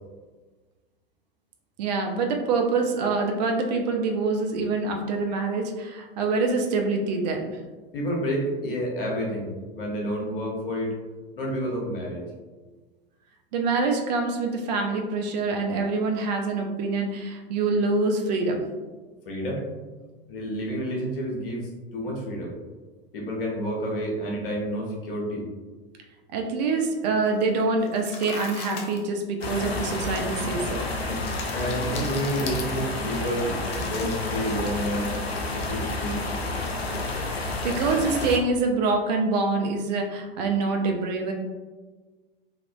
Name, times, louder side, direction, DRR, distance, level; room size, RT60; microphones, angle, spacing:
voice 1, 1.8-7.6 13.5-18.6 26.3-30.8 37.3-41.3, right 3 dB, 45° right, 3 dB, 0.4 m, -25 dB
voice 2, 7.9-10.9 11.4-12.3 19.3-19.7 20.3-22.5 23.1-25.5 31.5-35.1 35.5-36.2, equal, 65° left, -2 dB, 0.9 m, -29 dB
sound 1, 27.3-27.5 27.8-29.1 29.9-30.0 31.1-32.9 33.7-36.1 36.4-37.3, left 4 dB, 20° left, 0.3 m, -41 dB
sound 2, 29.4-38.4, left 2 dB, 90° left, 0.5 m, -30 dB
3.4 x 2.3 x 2.2 m, 1.3 s
figure-of-eight pair, 90°, 30 cm